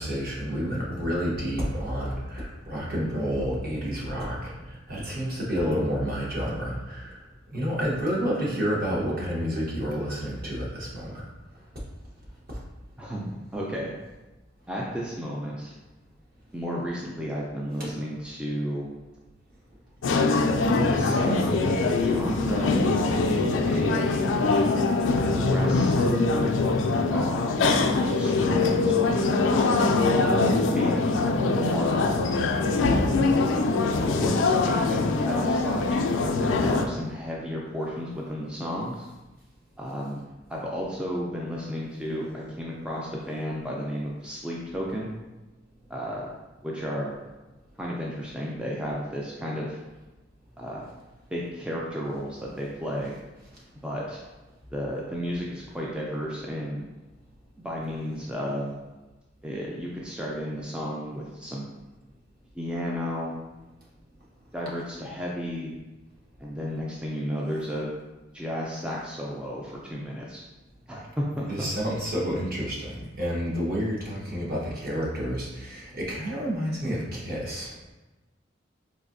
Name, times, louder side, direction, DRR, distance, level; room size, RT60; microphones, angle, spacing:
voice 1, 0.0-7.2 7.5-11.2 17.7-18.0 25.4-25.6 71.4-77.7, equal, 55° right, -5 dB, 1.0 m, -29 dB
voice 2, 13.0-13.9 14.7-15.7 16.5-18.9 20.5-24.1 25.1-26.3 27.1-27.6 28.1-29.3 30.0-32.0 34.0-39.1 39.8-40.2 40.5-45.1 45.9-46.3 46.6-47.1 47.8-49.8 50.6-50.8 51.3-53.2 53.8-54.2 54.7-56.8 57.6-58.7 59.4-61.6 62.6-63.4 64.5-65.8 66.4-67.9 68.3-70.4 70.9-71.7, equal, 5° right, -4 dB, 0.3 m, -33 dB
sound 1, 20.0-36.9, left 3 dB, 80° left, 0.3 m, -23 dB
4.0 x 2.6 x 2.5 m, 1.1 s
head